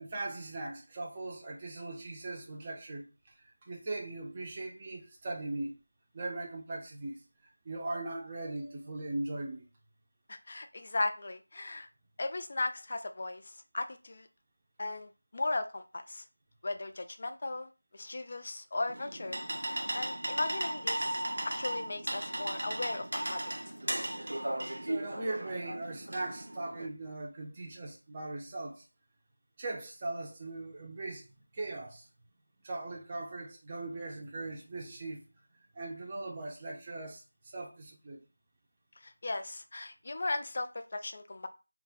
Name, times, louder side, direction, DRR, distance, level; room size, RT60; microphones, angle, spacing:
voice 1, 0.0-5.8 6.1-7.2 7.6-9.7 24.8-28.9 29.6-31.3 31.5-32.1 32.6-35.3 35.7-38.2, right 2 dB, 20° right, 0.5 m, -39 dB
voice 2, 10.3-11.9 12.2-14.3 14.8-16.2 16.6-23.4 39.0-41.5, left 2 dB, 35° left, 0.3 m, -37 dB
sound 1, 18.9-26.9, right 1 dB, 65° right, 0.5 m, -36 dB
2.3 x 2.1 x 3.3 m
figure-of-eight pair, 175°, 0 cm